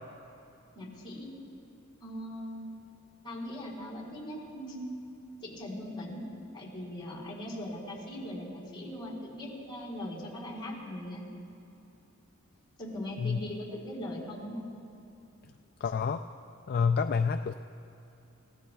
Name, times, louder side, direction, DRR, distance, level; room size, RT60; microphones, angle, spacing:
voice 1, 0.7-1.3 2.0-2.7 3.2-5.0 5.4-6.3 6.5-11.2 12.8-14.7, left 1 dB, 25° left, -5 dB, 4.4 m, -40 dB
voice 2, 15.8-16.3 16.7-17.5, left 5 dB, 45° left, 6 dB, 0.4 m, -28 dB
29.0 x 17.0 x 2.3 m, 2.8 s
head